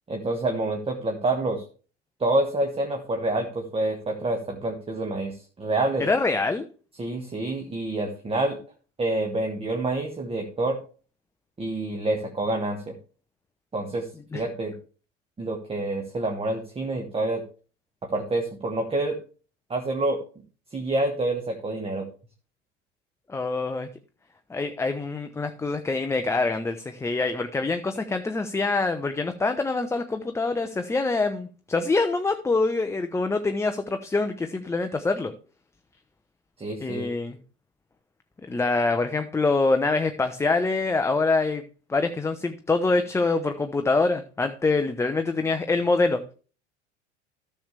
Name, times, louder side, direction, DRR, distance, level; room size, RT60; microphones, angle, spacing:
voice 1, 0.1-1.6 2.2-6.1 7.0-8.6 9.0-10.8 11.6-12.9 13.7-14.7 15.4-17.4 18.0-19.2 19.7-20.2 20.7-22.1 36.6-37.1, right 2 dB, 15° right, 4 dB, 1.4 m, -27 dB
voice 2, 6.0-6.7 14.3-14.4 23.3-23.9 24.5-35.3 36.8-37.4 38.5-41.6 41.9-46.2, left 3 dB, 10° left, 7 dB, 0.6 m, -25 dB
13.0 x 6.8 x 3.3 m, 0.37 s
figure-of-eight pair, 70°, 36 cm